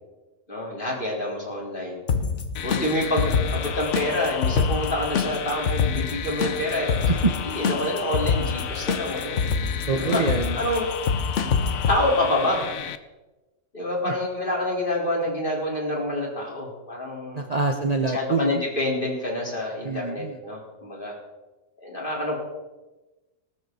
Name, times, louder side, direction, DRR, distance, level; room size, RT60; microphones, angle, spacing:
voice 1, 0.5-2.0 2.6-9.4 9.9-10.2 10.5-10.9 11.9-12.6 13.7-17.5 18.1-21.1 21.8-22.4, left 1 dB, 40° left, -3 dB, 4.6 m, -27 dB
sound 1, 2.1-12.0, left 5 dB, 65° left, 1.3 m, -26 dB
sound 2, 2.6-13.0, left 9 dB, 90° left, 1.2 m, -34 dB
voice 2, 9.9-10.6 17.3-18.6 19.8-20.4, right 4 dB, 35° right, 4 dB, 0.9 m, -25 dB
19.0 x 13.0 x 4.2 m, 1.1 s
omnidirectional pair, 1.4 m